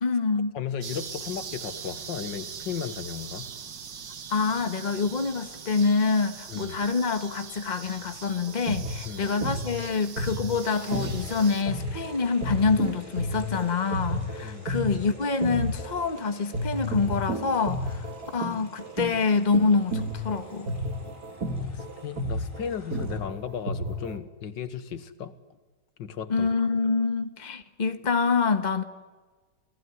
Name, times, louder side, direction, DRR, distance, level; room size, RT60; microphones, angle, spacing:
voice 1, 0.0-0.6 4.3-20.7 26.3-28.8, left 4 dB, 25° left, 1.5 m, -26 dB
voice 2, 0.5-3.5 6.5-6.8 9.1-9.3 14.4-14.7 21.6-25.3 26.0-26.5, left 8 dB, 85° left, 2.0 m, -35 dB
sound 1, 0.8-11.6, right 6 dB, 75° right, 2.2 m, -41 dB
sound 2, 8.5-16.2 16.5-24.2, equal, 55° right, 2.7 m, -32 dB
sound 3, 10.5-23.2, right 1 dB, 25° right, 6.9 m, -49 dB
29.0 x 18.0 x 9.5 m
omnidirectional pair, 1.9 m